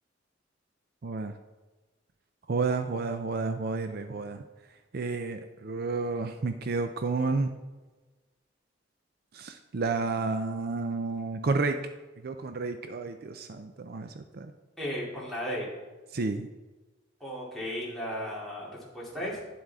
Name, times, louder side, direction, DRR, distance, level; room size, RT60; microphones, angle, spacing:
voice 1, 1.0-1.3 2.5-4.4 4.9-7.5 9.3-11.8 12.2-14.5 16.1-16.5, right 3 dB, 55° right, 8 dB, 0.5 m, -31 dB
voice 2, 14.8-15.7 17.2-18.7 18.9-19.4, equal, ahead, -7 dB, 2.7 m, -35 dB
10.5 x 7.4 x 3.6 m, 1.2 s
head